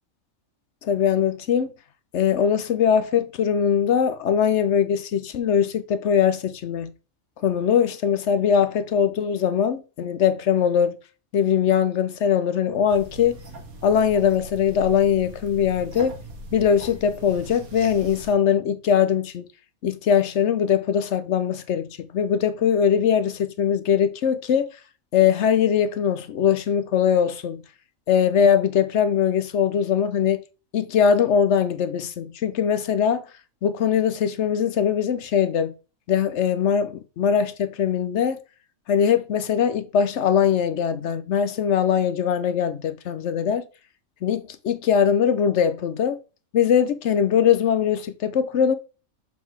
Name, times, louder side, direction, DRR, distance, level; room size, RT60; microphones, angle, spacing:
voice 1, 0.8-1.7 2.1-6.9 7.4-11.0 11.3-13.4 13.8-16.2 16.5-19.5 19.8-24.7 25.1-27.6 28.1-30.4 30.7-33.3 33.6-35.7 36.1-38.4 38.9-43.6 44.2-46.2 46.5-48.7, left 8 dB, 60° left, 0.9 m, -21 dB
sound 1, 12.9-18.3, right 1 dB, 90° right, 1.8 m, -40 dB
7.1 x 4.0 x 4.6 m
omnidirectional pair, 1.5 m